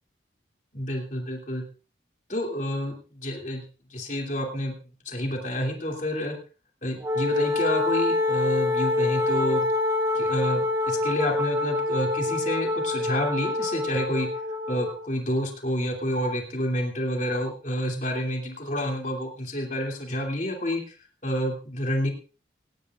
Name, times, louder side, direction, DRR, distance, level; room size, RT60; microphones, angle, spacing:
voice 1, 0.7-1.6 2.3-3.6 3.9-4.7 5.0-6.4 6.8-9.7 10.1-14.3 14.7-20.8 21.2-22.1, equal, 45° left, 1 dB, 2.7 m, -29 dB
Wind instrument woodwind instrument, 7.0-15.0, left 2 dB, 20° right, 1.9 m, -26 dB
17.5 x 17.5 x 2.5 m, 0.35 s
head